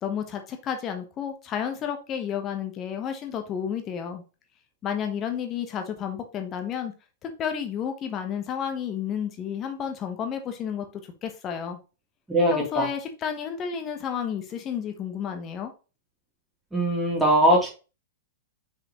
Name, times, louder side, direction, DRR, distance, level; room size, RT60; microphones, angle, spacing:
voice 1, 0.0-4.2 4.8-6.9 7.2-10.9 11.2-11.8 12.5-15.7, left 8 dB, 30° left, 5 dB, 1.2 m, -31 dB
voice 2, 12.3-12.8 16.7-17.7, right 1 dB, 5° right, -4 dB, 3.2 m, -21 dB
6.4 x 5.0 x 3.1 m, 0.32 s
figure-of-eight pair, 100°, 0 cm